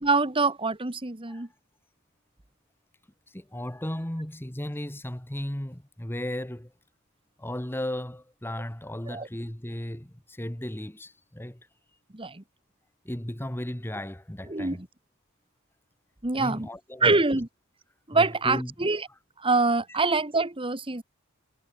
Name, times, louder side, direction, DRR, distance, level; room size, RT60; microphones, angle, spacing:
voice 1, 0.0-1.5 9.1-9.3 12.1-12.4 14.5-14.9 16.2-16.7 17.0-17.5 18.1-19.1 19.4-21.0, right 3 dB, 25° right, 1.4 m, -25 dB
voice 2, 3.3-6.7 7.4-11.7 13.0-14.8 16.3-17.2 18.1-18.7 19.9-20.0, left 1 dB, 10° left, 1.2 m, -35 dB
head